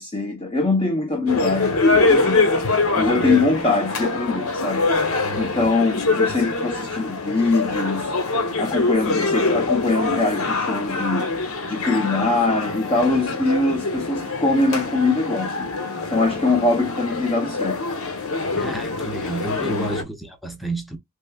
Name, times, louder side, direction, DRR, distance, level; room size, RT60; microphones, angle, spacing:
voice 1, 0.0-2.5 2.8-4.9 5.4-8.1 8.6-11.3 11.6-15.7 16.1-17.8 19.6-19.9, left 3 dB, 25° left, 0.9 m, -22 dB
sound 1, 1.3-20.0, left 3 dB, 70° left, 1.2 m, -24 dB
voice 2, 5.2-5.7 18.6-21.0, right 2 dB, ahead, 0.9 m, -31 dB
6.1 x 2.2 x 2.4 m
head